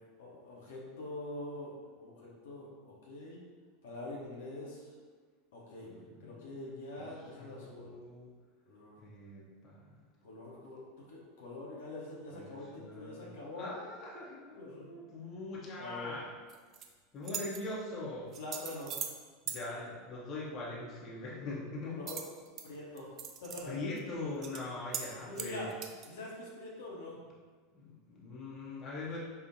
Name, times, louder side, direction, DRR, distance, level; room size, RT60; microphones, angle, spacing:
voice 1, 0.2-3.4 3.8-4.9 5.5-5.9 6.2-7.9 8.7-9.0 10.2-13.7 14.6-15.0 15.8-16.1 18.4-18.9 21.8-22.2 22.6-23.1 23.4-23.7 25.3-25.7 26.1-27.2, left 2 dB, 65° left, -5 dB, 0.8 m, -44 dB
voice 2, 5.8-6.4 7.0-7.1 7.3-8.3 9.0-9.9 12.3-13.3 13.6-16.3 17.1-18.4 19.5-22.0 23.6-25.7 27.7-29.2, left 2 dB, 35° left, -5 dB, 0.8 m, -42 dB
sound 1, 16.5-16.9 17.2-17.6 18.3-19.2 19.5-19.6 22.1-22.6 23.0-23.6 24.0-24.1 24.4-24.6 24.9-25.1 25.4-26.1, right 7 dB, 40° right, 0.4 m, -40 dB
4.7 x 2.4 x 2.6 m, 1.5 s
figure-of-eight pair, 80°, 0 cm